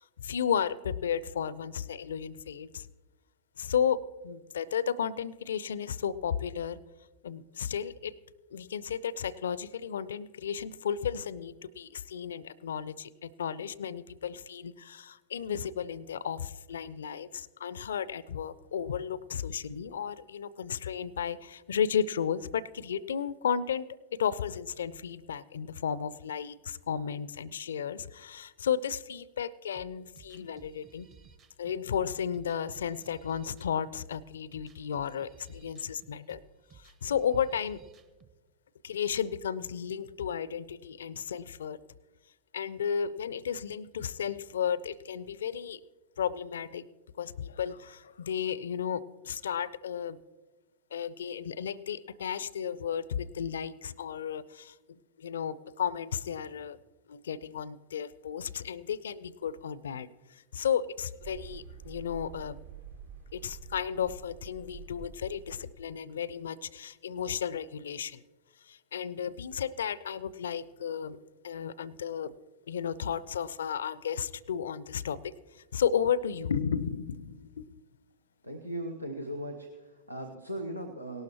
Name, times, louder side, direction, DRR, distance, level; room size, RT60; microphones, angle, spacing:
voice 1, 0.0-2.9 3.6-6.8 7.2-8.2 8.5-31.1 31.6-36.4 36.7-37.8 38.8-41.8 42.5-45.8 46.2-46.9 47.2-50.2 50.9-56.8 57.1-62.6 63.3-68.2 68.6-71.2 71.4-72.3 72.7-77.7, left 8 dB, 65° left, 21 dB, 0.4 m, -33 dB
sound 1, 29.7-38.3, right 5 dB, 35° right, 0.9 m, -57 dB
sound 2, 61.2-66.0, right 6 dB, 55° right, 0.9 m, -48 dB
voice 2, 78.4-81.2, right 1 dB, 85° right, 4 dB, 0.7 m, -38 dB
18.0 x 12.0 x 3.0 m, 1.2 s
figure-of-eight pair, 90°, 0 cm